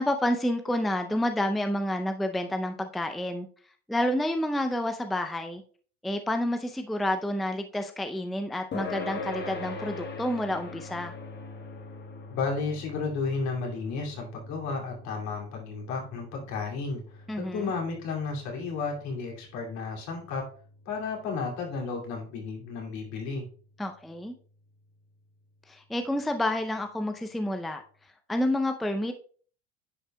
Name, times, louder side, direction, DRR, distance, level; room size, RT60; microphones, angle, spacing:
voice 1, 0.0-3.5 3.9-5.6 6.0-11.1 17.3-17.7 23.8-24.3 25.7-27.8 28.3-29.1, left 1 dB, ahead, 6 dB, 0.5 m, -29 dB
sound 1, 8.7-23.6, left 3 dB, 35° left, 1.3 m, -43 dB
voice 2, 12.3-20.4 20.9-23.5, left 4 dB, 65° left, 0 dB, 2.7 m, -33 dB
9.9 x 5.3 x 2.2 m, 0.43 s
supercardioid pair, 100°, 31 cm